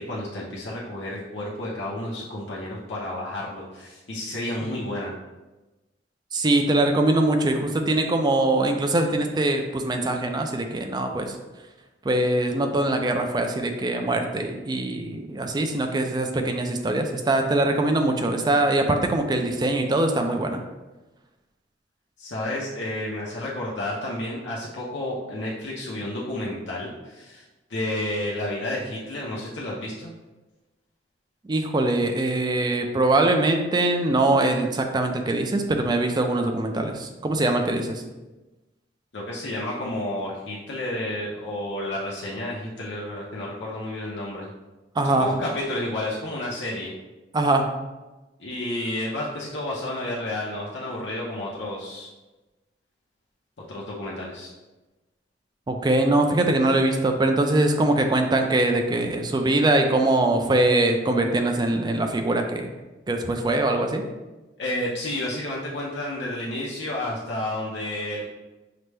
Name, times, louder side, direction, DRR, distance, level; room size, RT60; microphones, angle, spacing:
voice 1, 0.0-5.1 22.2-27.4 27.7-30.1 39.1-44.5 45.0-46.9 48.4-52.1 53.7-54.5 64.6-68.2, left 1 dB, 75° left, -5 dB, 0.7 m, -31 dB
voice 2, 6.3-11.3 12.0-20.6 31.5-38.0 45.0-45.3 47.3-47.6 55.7-62.7 63.1-64.0, right 2 dB, 25° right, 5 dB, 0.4 m, -22 dB
5.8 x 2.1 x 3.3 m, 1.1 s
head